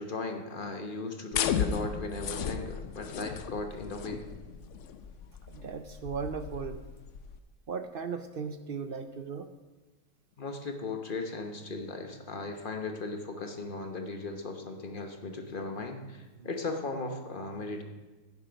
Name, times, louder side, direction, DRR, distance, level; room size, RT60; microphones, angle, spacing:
voice 1, 0.0-4.3 10.4-17.8, left 3 dB, 40° left, 5 dB, 1.2 m, -37 dB
sound 1, 1.3-7.4, left 7 dB, 65° left, 0.9 m, -35 dB
voice 2, 5.5-6.8 7.7-9.5 16.4-16.5, right 6 dB, 55° right, 9 dB, 0.6 m, -37 dB
11.5 x 9.5 x 5.1 m, 1.2 s
omnidirectional pair, 1.5 m